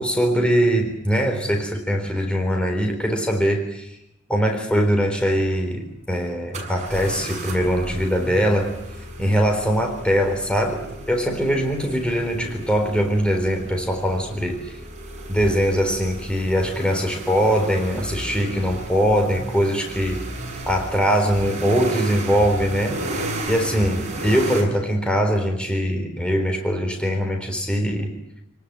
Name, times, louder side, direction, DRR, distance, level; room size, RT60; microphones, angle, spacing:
voice 1, 0.0-3.9 4.3-8.8 9.2-10.8 11.1-14.6 15.3-20.2 20.7-23.0 23.5-28.1, equal, 5° left, 3 dB, 3.8 m, -22 dB
sound 1, 5.4-5.5 6.5-24.6, right 1 dB, 35° right, 7.4 m, -34 dB
28.5 x 19.5 x 9.3 m, 0.79 s
head